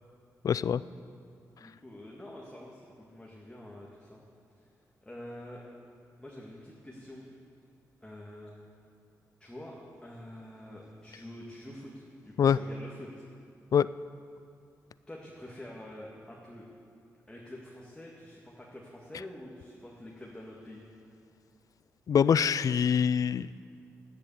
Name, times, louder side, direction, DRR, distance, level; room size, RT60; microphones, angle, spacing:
voice 1, 0.4-0.8 12.4-12.6 13.7-13.9 22.1-23.6, left 7 dB, 60° left, 17 dB, 0.3 m, -24 dB
voice 2, 1.6-4.2 4.6-4.7 5.0-5.6 6.2-7.3 8.0-8.6 9.4-13.2 15.1-16.7 17.3-20.8, left 1 dB, 15° left, -3 dB, 2.0 m, -46 dB
10.5 x 9.9 x 7.1 m, 2.3 s
supercardioid pair, 50°, 7 cm